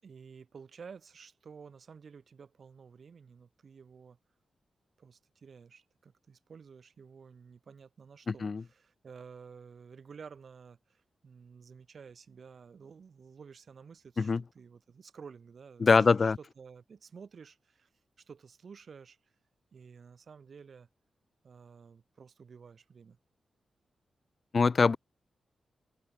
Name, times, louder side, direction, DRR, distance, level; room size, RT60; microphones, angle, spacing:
voice 1, 0.0-4.2 5.0-17.9 18.2-19.3 19.7-20.9 21.4-23.2, right 6 dB, 55° right, 5.3 m, -52 dB
voice 2, 15.8-16.4 24.5-25.0, left 4 dB, 40° left, 0.4 m, -23 dB
wide cardioid pair, 115°, 0 cm